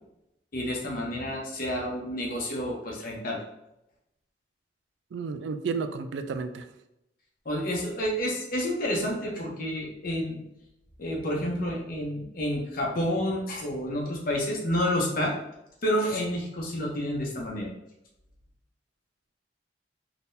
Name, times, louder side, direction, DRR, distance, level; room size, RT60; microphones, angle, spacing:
voice 1, 0.5-3.4 7.4-10.4 11.0-15.3 15.8-17.7, equal, 55° left, -1 dB, 0.8 m, -29 dB
voice 2, 5.1-6.7, right 5 dB, 80° right, 9 dB, 0.3 m, -32 dB
3.7 x 2.8 x 2.6 m, 0.86 s
head